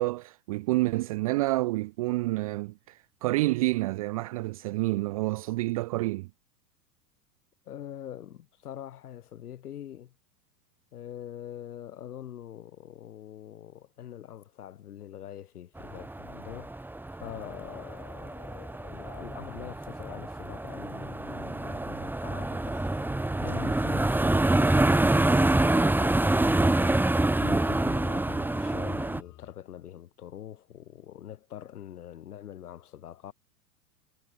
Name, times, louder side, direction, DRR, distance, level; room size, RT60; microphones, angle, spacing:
voice 1, 0.0-6.3, right 20 dB, 25° right, 0.3 m, -28 dB
voice 2, 7.7-10.1 10.9-23.1 23.4-33.3, left 11 dB, 65° left, 5.6 m, -44 dB
sound 1, 15.8-29.2, right 2 dB, 5° right, 1.6 m, -26 dB
sound 2, 22.5-29.5, left 16 dB, 35° left, 6.0 m, -52 dB
figure-of-eight pair, 90°, 48 cm